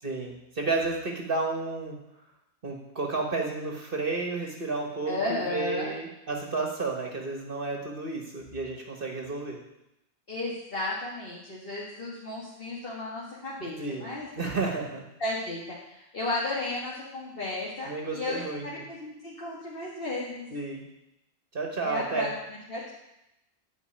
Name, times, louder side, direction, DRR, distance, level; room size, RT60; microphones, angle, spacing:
voice 1, 0.0-2.0 2.6-9.6 13.8-15.0 17.9-18.8 20.5-20.9 21.5-22.3, right 3 dB, 55° right, 1 dB, 1.7 m, -32 dB
voice 2, 5.1-5.9 10.3-14.3 15.2-20.5 21.8-22.9, left 2 dB, 55° left, -5 dB, 2.1 m, -34 dB
11.0 x 5.3 x 8.7 m, 0.88 s
omnidirectional pair, 1.1 m